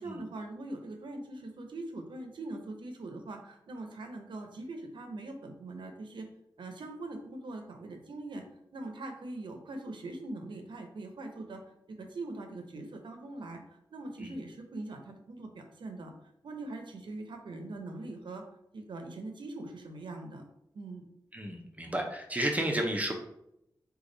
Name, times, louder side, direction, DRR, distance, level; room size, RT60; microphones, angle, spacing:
voice 1, 0.0-6.3 6.6-8.4 8.7-11.6 11.9-13.6 13.9-16.1 16.4-18.4 18.7-20.4 20.7-21.1, right 2 dB, 80° right, 4 dB, 0.6 m, -42 dB
voice 2, 21.3-23.1, right 1 dB, 20° right, 2 dB, 0.8 m, -32 dB
3.3 x 2.3 x 3.8 m, 0.79 s
cardioid pair, 55°, 8 cm